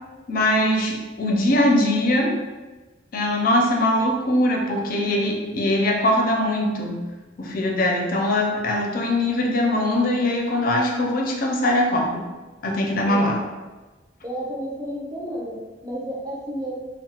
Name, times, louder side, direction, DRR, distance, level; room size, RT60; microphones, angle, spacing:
voice 1, 0.3-2.3 3.1-7.0 7.4-12.2 12.6-13.4, left 1 dB, 50° left, 1 dB, 0.4 m, -21 dB
voice 2, 13.0-13.4 14.2-16.7, equal, 20° right, -4 dB, 0.5 m, -31 dB
2.8 x 2.0 x 2.8 m, 1.2 s
head